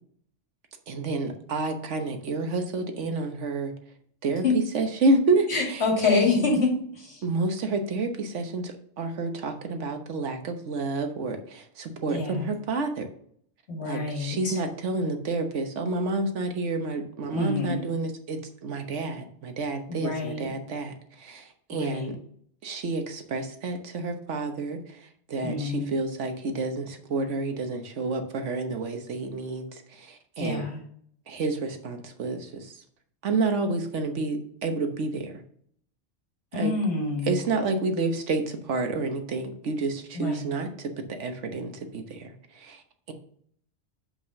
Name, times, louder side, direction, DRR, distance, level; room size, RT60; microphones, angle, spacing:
voice 1, 0.9-3.7 4.2-4.4 4.7-5.8 6.1-6.5 7.2-13.1 13.8-22.2 22.6-30.7 31.3-32.8 33.2-35.3 36.5-36.8 37.2-42.8 43.1-43.2, right 3 dB, 85° right, 6 dB, 1.3 m, -29 dB
voice 2, 5.5-7.2 12.1-12.5 13.7-14.6 17.3-17.8 19.9-20.5 21.7-22.1 25.4-25.9 30.4-30.8 36.5-37.4 40.1-40.5, left 4 dB, 65° left, -2 dB, 2.5 m, -27 dB
5.6 x 5.3 x 6.3 m, 0.63 s
omnidirectional pair, 1.2 m